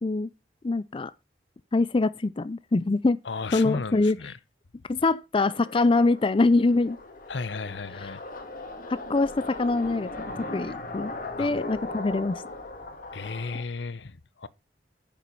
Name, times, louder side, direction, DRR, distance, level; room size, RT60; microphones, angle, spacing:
voice 1, 0.6-1.1 1.7-3.2 3.5-4.2 4.9-7.0 8.9-10.1 10.4-11.1 11.4-12.4, left 3 dB, 30° left, 0.4 m, -24 dB
voice 2, 3.2-4.3 7.3-8.2 11.4-11.5 13.1-14.5, left 4 dB, 80° left, 0.8 m, -34 dB
sound 1, 5.4-13.6, left 2 dB, 50° left, 2.0 m, -38 dB
9.3 x 7.5 x 5.5 m
head